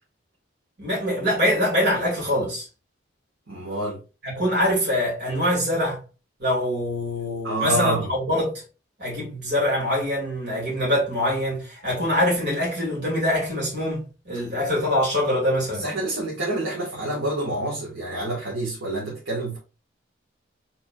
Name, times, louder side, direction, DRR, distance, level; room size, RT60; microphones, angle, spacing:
voice 1, 0.8-2.6 4.2-6.0 6.4-8.6 9.0-15.9, left 1 dB, 60° right, 2.5 m, -24 dB
voice 2, 3.5-4.0 7.4-8.1 15.7-19.6, right 1 dB, 75° right, 1.5 m, -27 dB
4.6 x 3.9 x 2.4 m
head